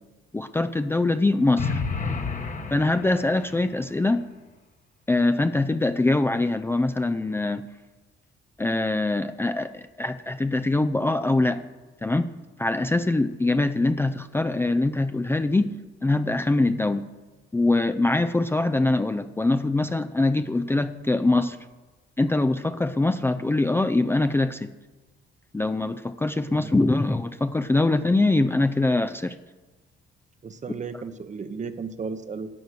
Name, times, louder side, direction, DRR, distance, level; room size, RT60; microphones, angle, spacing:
voice 1, 0.3-1.8 2.7-4.3 5.1-7.7 8.6-11.6 12.0-12.3 12.6-15.7 16.0-17.1 17.5-21.6 22.2-24.7 25.5-29.4, left 2 dB, 10° left, 9 dB, 0.4 m, -23 dB
sound 1, 1.6-3.6, left 4 dB, 40° left, 1.2 m, -30 dB
voice 2, 30.4-32.5, right 5 dB, 35° right, 11 dB, 0.9 m, -34 dB
13.0 x 8.1 x 6.4 m, 1.2 s
cardioid pair, 90°, 20 cm